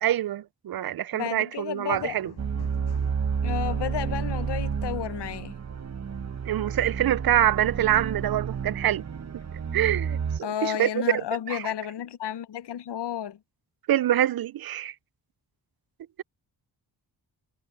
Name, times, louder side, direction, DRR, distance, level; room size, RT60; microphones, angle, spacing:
voice 1, 0.0-2.3 6.4-9.0 9.7-11.7 13.9-14.9, right 12 dB, 60° right, 0.5 m, -25 dB
voice 2, 1.1-2.2 3.4-5.5 10.4-13.4, left 10 dB, 85° left, 0.8 m, -32 dB
sound 1, 1.8-9.8, left 7 dB, 70° left, 7.5 m, -55 dB
sound 2, 2.4-10.4, right 6 dB, 40° right, 1.0 m, -30 dB
wide cardioid pair, 115°, 40 cm